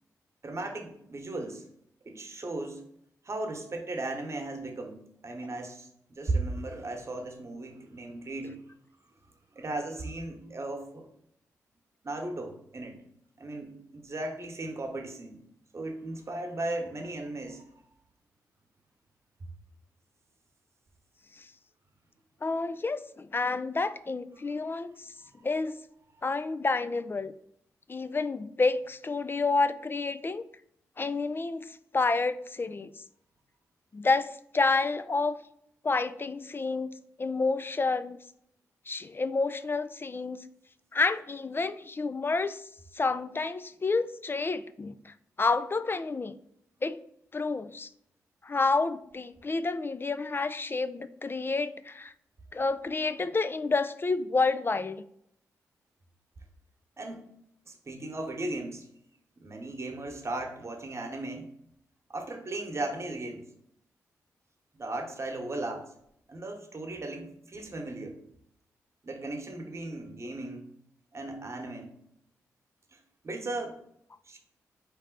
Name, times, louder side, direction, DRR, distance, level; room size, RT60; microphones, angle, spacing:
voice 1, 0.4-1.6 2.0-2.8 3.2-5.0 5.2-8.6 9.5-11.1 12.0-13.0 13.4-15.4 15.7-17.7 25.2-25.5 57.0-57.2 57.7-58.9 59.4-61.5 62.1-63.4 64.7-65.9 66.3-68.2 69.0-70.7 71.1-71.9 72.9-73.0 73.2-73.8 74.3-74.4, right 2 dB, 45° right, 4 dB, 1.1 m, -36 dB
voice 2, 22.4-25.1 25.4-25.8 26.2-27.3 27.9-30.4 31.0-32.9 33.9-35.3 35.8-36.9 37.2-38.2 38.9-40.4 40.9-42.7 42.9-46.3 46.8-47.0 47.3-47.9 48.4-52.1 52.5-55.0, left 3 dB, 35° left, 13 dB, 0.3 m, -29 dB
4.1 x 3.3 x 3.8 m, 0.70 s
supercardioid pair, 40°, 7 cm